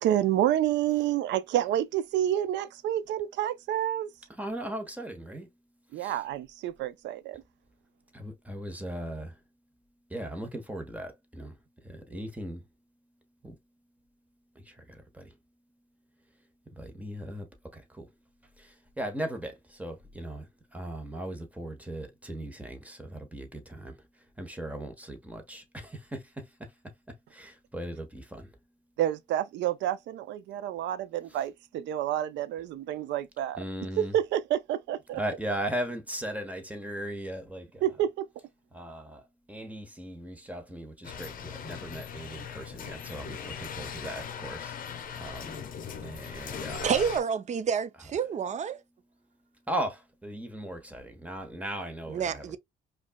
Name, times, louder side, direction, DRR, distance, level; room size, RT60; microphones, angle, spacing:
voice 1, 0.0-4.1 5.9-7.4 29.0-33.6 34.0-35.2 37.8-38.3, right 12 dB, 90° right, 0.5 m, -29 dB
voice 2, 4.4-5.5 6.0-6.2 8.1-9.3 10.1-11.5 11.8-12.6 13.4-13.5 14.7-14.8 15.2-15.3 16.8-17.5 17.7-18.1 19.0-20.5 20.7-23.9 24.4-26.4 27.3-28.5 33.6-34.1 35.2-37.8 38.7-39.2 39.5-45.6 46.0-47.0 49.7-52.6, right 1 dB, 10° right, 1.1 m, -38 dB
sound 1, 41.0-47.2, left 7 dB, 50° left, 0.8 m, -39 dB
voice 3, 46.8-48.8 52.1-52.6, right 7 dB, 40° right, 0.5 m, -29 dB
5.1 x 2.4 x 2.2 m
cardioid pair, 120°, 18 cm